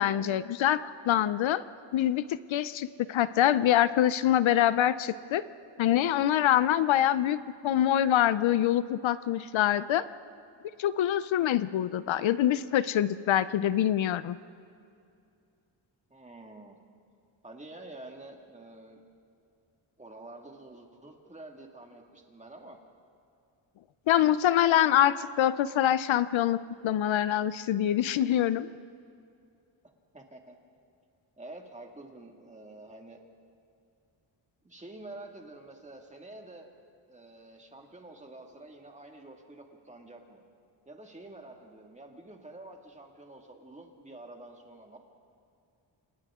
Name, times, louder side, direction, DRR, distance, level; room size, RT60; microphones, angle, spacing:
voice 1, 0.0-1.6 1.9-5.4 5.8-10.0 10.8-14.4 24.1-28.7, left 11 dB, 75° left, 15 dB, 0.7 m, -25 dB
voice 2, 7.0-7.4 16.1-16.8 17.4-19.0 20.0-22.8 30.1-30.6 31.4-33.2 34.6-36.7 37.1-40.4 40.9-45.0, right 2 dB, 15° right, 2 dB, 2.0 m, -48 dB
29.0 x 27.5 x 3.7 m, 2.5 s
wide cardioid pair, 165°, 47 cm